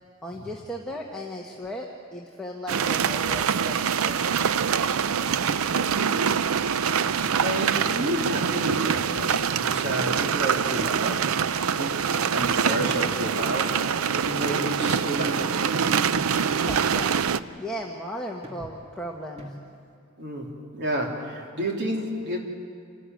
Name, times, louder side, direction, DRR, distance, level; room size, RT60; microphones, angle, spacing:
voice 1, 0.2-4.2 12.3-12.9 16.5-19.5, equal, 5° left, -2 dB, 1.4 m, -37 dB
sound 1, 2.7-17.4, right 7 dB, 80° right, 0.5 m, -25 dB
sound 2, 4.8-5.1 5.6-5.8 6.3-6.7 7.1-7.2 7.7-7.9 8.4-8.7 9.2-9.5 10.2-10.6 11.3-12.0 12.7-12.8 13.4-14.1 14.5-15.6 16.1-16.6 17.3-17.6 18.4-18.9 19.4-19.9, equal, 30° right, 2.4 m, -44 dB
voice 2, 5.6-6.4 7.0-15.6 20.2-22.4, right 1 dB, 55° right, 0 dB, 3.3 m, -31 dB
27.5 x 13.5 x 9.3 m, 2.3 s
head